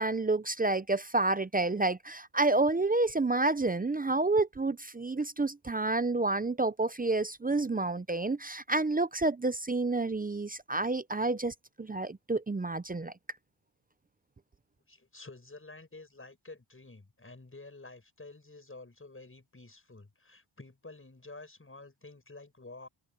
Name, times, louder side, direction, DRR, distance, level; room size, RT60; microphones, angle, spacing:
voice 1, 0.0-13.1, right 2 dB, 20° right, 0.5 m, -29 dB
voice 2, 14.9-22.9, left 3 dB, 25° left, 7.8 m, -50 dB
wide cardioid pair, 90°, 49 cm